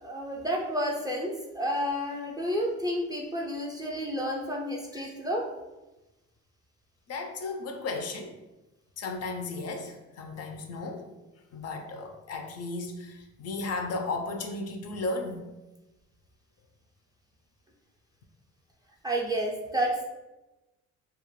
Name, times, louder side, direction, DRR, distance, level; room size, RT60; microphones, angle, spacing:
voice 1, 0.0-5.5 19.0-20.0, equal, 15° right, -2 dB, 0.3 m, -30 dB
voice 2, 7.1-8.3 9.0-11.1 11.5-15.4, left 3 dB, 55° left, 5 dB, 0.4 m, -35 dB
2.3 x 2.0 x 3.0 m, 1.1 s
cardioid pair, 90°, 30 cm